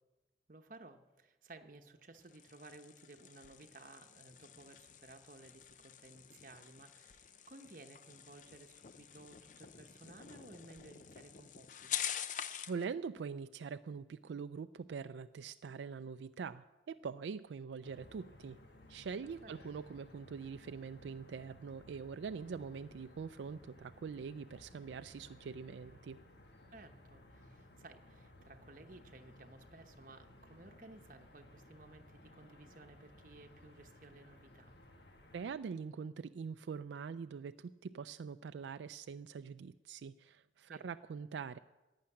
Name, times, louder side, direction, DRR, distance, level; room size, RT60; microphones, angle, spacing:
voice 1, 0.5-11.9 19.4-19.5 26.7-34.7 40.7-40.8, right 2 dB, 50° right, 6 dB, 1.0 m, -57 dB
sound 1, 2.1-12.8, left 9 dB, 45° left, 0.5 m, -46 dB
voice 2, 12.7-18.6 18.9-26.2 35.3-41.6, right 5 dB, 85° right, 10 dB, 0.3 m, -44 dB
sound 2, 17.8-35.5, left 1 dB, 75° left, 1.4 m, -59 dB
11.5 x 8.7 x 9.8 m, 1.1 s
head